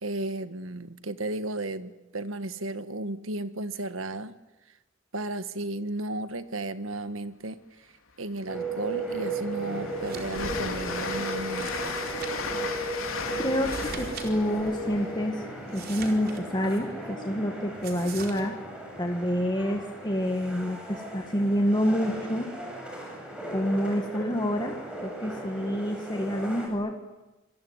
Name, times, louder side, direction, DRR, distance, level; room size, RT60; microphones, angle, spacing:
voice 1, 0.0-4.4 5.1-7.9 8.2-11.7, right 2 dB, 75° right, 11 dB, 1.6 m, -34 dB
Train, 8.2-8.3 8.7-16.5, left 4 dB, 80° left, 4.1 m, -36 dB
sound 1, 8.5-26.7, right 2 dB, 5° right, 7.6 m, -36 dB
sound 2, 10.0-10.4 10.7-10.8 11.5-12.6 13.5-14.3 14.6-14.7 15.7-16.8 17.8-18.4, right 6 dB, 50° right, 4.3 m, -43 dB
voice 2, 13.4-15.4 15.7-18.5 19.0-22.5 23.5-24.7 25.0-26.9, equal, 20° left, 3 dB, 1.8 m, -28 dB
26.5 x 22.5 x 9.6 m, 1.0 s
head